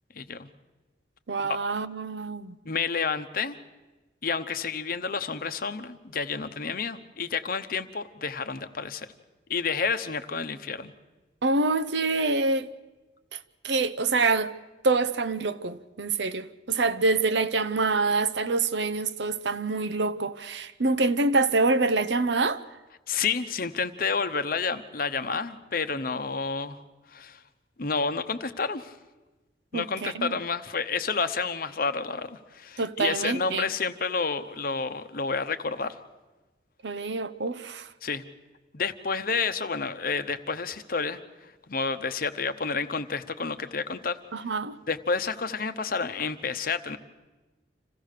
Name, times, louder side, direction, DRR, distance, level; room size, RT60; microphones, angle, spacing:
voice 1, 0.1-0.5 1.4-1.6 2.6-3.6 4.2-9.1 9.5-10.9 23.1-26.8 27.1-27.4 27.8-28.9 29.7-36.0 38.0-38.2 38.7-44.2 44.9-47.0, left 5 dB, 50° left, 0.9 m, -30 dB
voice 2, 1.3-2.5 11.4-12.7 13.3-13.4 13.6-14.5 14.8-22.6 29.7-30.4 32.8-33.7 36.8-37.9 44.3-44.8, right 3 dB, 70° right, 0.7 m, -26 dB
27.0 x 15.5 x 6.6 m
head